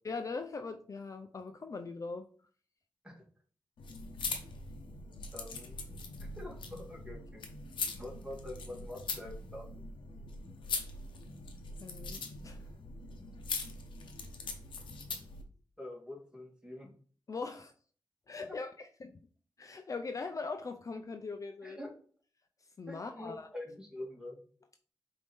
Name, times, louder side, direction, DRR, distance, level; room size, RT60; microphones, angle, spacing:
voice 1, 0.0-2.3 11.8-12.7 17.3-17.7 18.3-19.2 19.6-21.8 22.8-23.5, left 4 dB, 45° left, 7 dB, 0.4 m, -41 dB
sound 1, 3.8-15.4, left 4 dB, 90° left, 0.7 m, -42 dB
voice 2, 5.3-7.5 8.0-9.8 15.8-16.9 18.5-18.6 21.6-21.9 22.9-24.4, left 1 dB, 10° right, 0 dB, 1.7 m, -46 dB
5.1 x 2.7 x 3.4 m, 0.44 s
cardioid pair, 60°, 8 cm